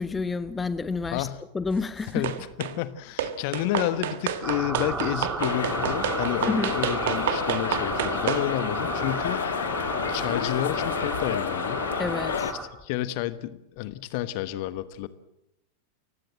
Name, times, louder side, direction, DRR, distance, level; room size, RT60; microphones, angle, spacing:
voice 1, 0.0-1.3 1.5-2.3 6.4-6.8 12.0-12.5, left 4 dB, 15° left, 14 dB, 1.0 m, -29 dB
voice 2, 1.1-1.4 2.1-9.4 10.1-11.9 12.8-15.1, left 14 dB, 45° left, 15 dB, 1.2 m, -30 dB
sound 1, 2.2-2.8 3.2-8.5, right 10 dB, 55° right, 1.6 m, -30 dB
sound 2, 4.4-12.6, right 4 dB, 20° right, 3.2 m, -33 dB
sound 3, 5.4-12.5, left 8 dB, 65° left, 1.5 m, -30 dB
29.0 x 16.0 x 7.5 m, 0.81 s
figure-of-eight pair, 90°, 0 cm